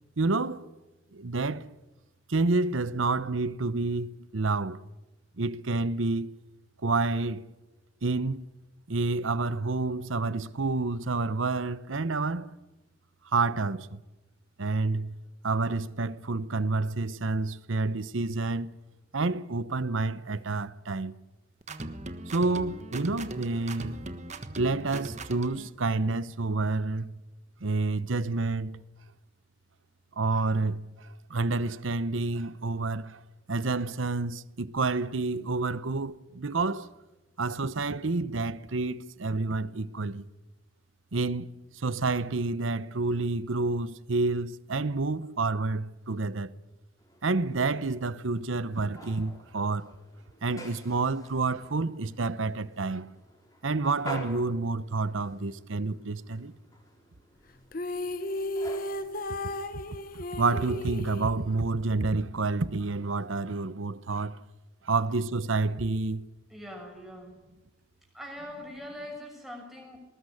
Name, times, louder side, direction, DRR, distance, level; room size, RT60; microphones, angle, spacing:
voice 1, 0.2-0.6 1.1-1.7 2.3-4.8 5.4-6.4 6.8-7.5 8.0-8.4 8.9-12.5 13.3-14.0 14.6-15.2 15.4-18.8 19.1-21.2 22.3-24.0 24.6-27.2 27.6-28.8 30.2-33.2 33.5-36.9 37.4-40.2 41.1-46.6 47.2-49.9 50.4-53.1 53.6-56.5 60.3-64.4 64.8-66.2, right 3 dB, 80° right, 0.9 m, -29 dB
sound 1, 21.6-25.7, right 2 dB, 35° right, 1.4 m, -39 dB
sound 2, 47.0-60.7, left 1 dB, 15° left, 5.0 m, -49 dB
sound 3, 57.7-62.0, left 1 dB, 45° left, 1.0 m, -34 dB
voice 2, 66.5-67.4 68.1-70.0, left 1 dB, ahead, 6.5 m, -42 dB
20.5 x 19.5 x 9.9 m
head